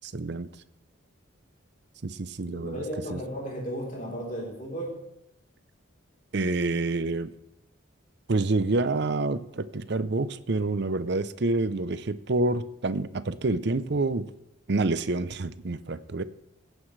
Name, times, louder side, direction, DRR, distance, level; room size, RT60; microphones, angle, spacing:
voice 1, 0.0-0.5 2.0-2.8 3.1-3.2 6.3-7.3 8.3-14.3 14.7-16.2, right 2 dB, 55° right, 14 dB, 0.6 m, -27 dB
voice 2, 2.5-5.0, equal, 40° left, -1 dB, 3.6 m, -35 dB
17.0 x 9.6 x 3.3 m, 0.87 s
head